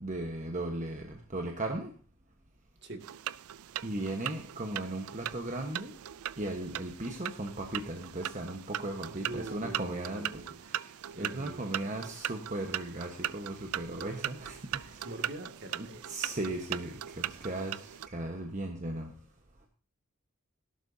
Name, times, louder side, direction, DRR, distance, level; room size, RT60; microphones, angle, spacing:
voice 1, 0.0-1.9 3.8-5.9 6.4-10.3 10.6-15.1 15.8-19.1, right 1 dB, 35° right, 3 dB, 1.2 m, -37 dB
sound 1, 3.0-18.1, right 12 dB, 90° right, 0.4 m, -40 dB
voice 2, 9.2-10.5 11.1-12.1 15.0-16.4, right 1 dB, 55° right, 5 dB, 2.2 m, -44 dB
17.0 x 11.5 x 2.8 m, 0.40 s
head